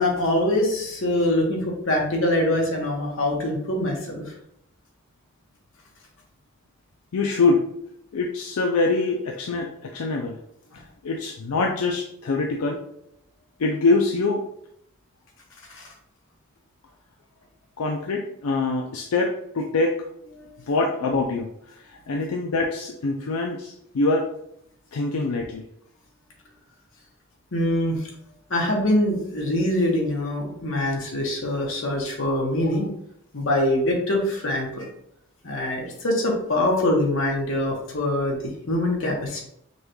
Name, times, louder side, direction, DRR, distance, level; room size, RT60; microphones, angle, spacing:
voice 1, 0.0-4.2 10.7-10.8 15.7-15.9 20.4-20.7 27.5-28.1 28.5-32.9 33.3-34.9 35.4-39.4, left 1 dB, 65° left, -1 dB, 1.1 m, -24 dB
voice 2, 7.1-7.7 8.1-10.4 10.7-12.8 13.6-14.4 17.8-20.1 20.7-24.3 24.9-25.6, left 3 dB, 85° left, 2 dB, 0.4 m, -24 dB
5.4 x 2.3 x 3.1 m, 0.73 s
head